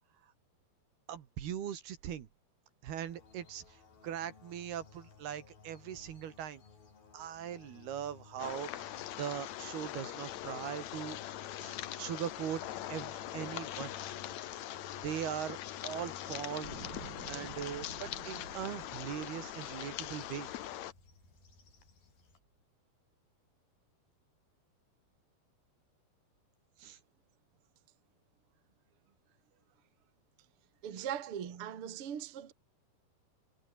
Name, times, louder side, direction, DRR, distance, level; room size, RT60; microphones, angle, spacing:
voice 1, 1.1-2.3 2.8-3.8 4.0-6.6 7.1-11.2 11.6-13.9 15.0-15.6 15.8-16.8 17.3-20.5 26.8-27.0 30.9-31.1, right 10 dB, 70° right, 3.9 m, -40 dB
sound 1, 3.1-22.4, left 5 dB, 60° left, 7.5 m, -58 dB
sound 2, 8.4-20.9, left 13 dB, 85° left, 1.6 m, -42 dB
sound 3, 16.6-21.9 22.6-22.7, right 4 dB, 25° right, 2.7 m, -52 dB
voice 2, 30.8-32.5, right 9 dB, 40° right, 2.3 m, -40 dB
omnidirectional pair, 4.9 m